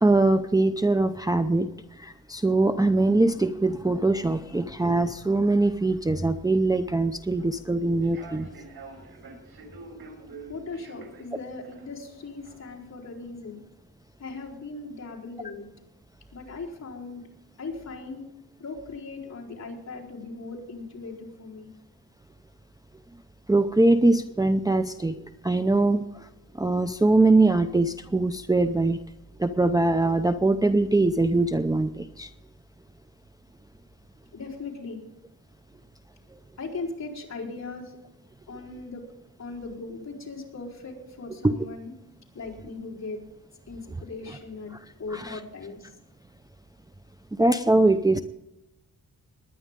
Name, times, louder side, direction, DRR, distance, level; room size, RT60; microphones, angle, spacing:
voice 1, 0.0-1.7 2.0-8.5 23.5-26.0 26.6-29.0 29.4-32.3 41.4-41.5 45.1-45.4 47.4-48.2, right 2 dB, 10° right, 8 dB, 0.6 m, -22 dB
Human voice / Subway metro underground, 7.2-12.7, right 3 dB, 80° right, 4.4 m, -47 dB
voice 2, 10.5-13.6 14.2-15.7 16.3-17.2 17.6-18.2 18.6-21.7 34.3-35.0 36.6-38.0 38.5-39.0 39.4-41.9 42.3-43.2 43.7-44.7 45.0-45.9, left 3 dB, 45° left, -4 dB, 4.4 m, -38 dB
20.5 x 10.0 x 3.8 m, 0.91 s
wide cardioid pair, 110°, 37 cm